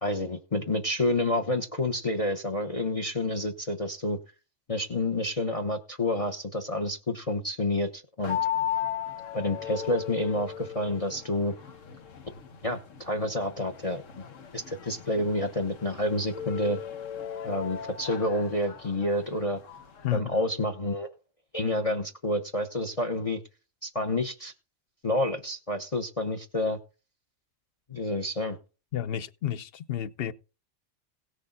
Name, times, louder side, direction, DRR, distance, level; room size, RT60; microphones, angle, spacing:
voice 1, 0.0-4.2 4.7-8.4 9.3-11.5 12.6-14.0 14.5-16.8 17.4-19.6 20.1-21.1 21.5-23.4 23.8-24.5 25.0-26.8 27.9-28.6, left 1 dB, 30° left, 0.9 m, -29 dB
sound 1, 8.2-20.2, left 9 dB, 90° left, 1.5 m, -36 dB
voice 2, 20.0-20.4 28.9-30.3, left 11 dB, 60° left, 0.8 m, -31 dB
17.5 x 6.4 x 3.8 m
omnidirectional pair, 1.3 m